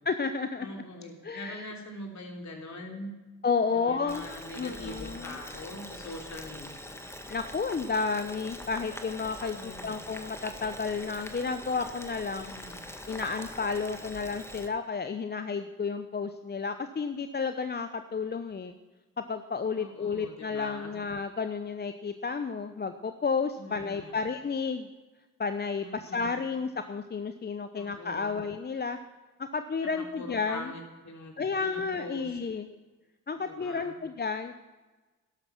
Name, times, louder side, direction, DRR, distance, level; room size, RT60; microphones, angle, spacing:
voice 1, 0.1-0.7 1.2-1.6 3.4-4.2 4.6-5.4 7.3-12.5 13.1-18.7 19.2-24.9 25.4-29.0 29.4-30.7 31.4-32.7 33.3-34.6, left 5 dB, 25° left, 9 dB, 0.8 m, -32 dB
voice 2, 0.6-3.1 3.7-7.0 9.5-10.1 12.4-12.8 19.7-20.9 23.5-24.2 25.8-26.3 27.7-28.4 29.8-32.4 33.4-34.0, left 1 dB, 50° left, 1 dB, 3.4 m, -43 dB
Boiling, 4.1-14.7, left 1 dB, 5° left, 1.7 m, -43 dB
12.0 x 12.0 x 5.9 m, 1.2 s
hypercardioid pair, 50°, 37 cm